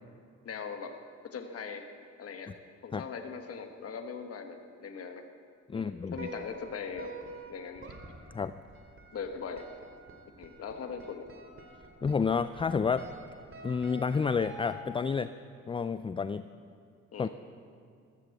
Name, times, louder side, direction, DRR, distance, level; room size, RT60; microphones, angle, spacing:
voice 1, 0.4-0.9 1.3-1.8 2.2-2.5 2.8-5.2 5.7-7.1 7.5-7.8 9.1-9.7 10.4-11.3 17.1-17.3, left 6 dB, 50° left, 5 dB, 1.3 m, -40 dB
voice 2, 5.7-6.1 8.3-8.5 12.0-13.1 13.6-15.3 15.7-16.5 17.2-17.3, left 5 dB, 20° left, 12 dB, 0.3 m, -30 dB
sound 1, 6.1-15.1, right 1 dB, 40° right, 2.7 m, -48 dB
14.5 x 14.0 x 7.2 m, 2.3 s
cardioid pair, 90°, 30 cm